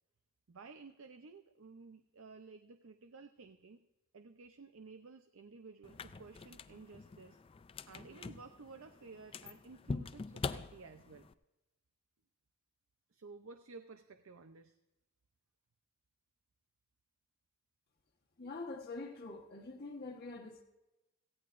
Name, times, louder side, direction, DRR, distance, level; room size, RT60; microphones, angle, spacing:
voice 1, 0.5-3.8 4.1-7.4 7.9-11.3 13.1-14.7, right 4 dB, 65° right, 9 dB, 0.6 m, -54 dB
sound 1, 5.8-11.3, left 4 dB, 25° left, 0.3 m, -44 dB
voice 2, 18.4-20.6, left 3 dB, 45° left, 0 dB, 1.2 m, -45 dB
17.5 x 15.5 x 2.5 m, 1.0 s
head